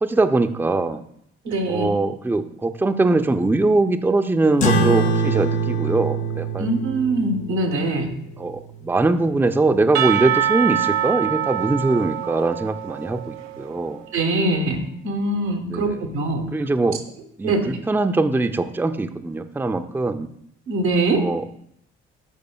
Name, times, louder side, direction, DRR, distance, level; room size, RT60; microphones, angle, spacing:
voice 1, 0.0-1.0 1.7-6.7 8.4-14.0 15.7-16.1 16.5-17.0 17.4-20.3 21.1-21.4, right 2 dB, 5° right, 8 dB, 0.5 m, -22 dB
voice 2, 1.4-1.9 6.6-8.1 14.1-16.4 17.4-17.6 20.7-21.2, right 2 dB, 80° right, 2 dB, 1.2 m, -22 dB
sound 1, 4.6-9.5, right 2 dB, 80° left, 0.9 m, -25 dB
Percussion / Church bell, 9.9-13.9, right 10 dB, 55° right, 0.5 m, -25 dB
10.5 x 4.9 x 2.3 m, 0.71 s
figure-of-eight pair, 45°, 33 cm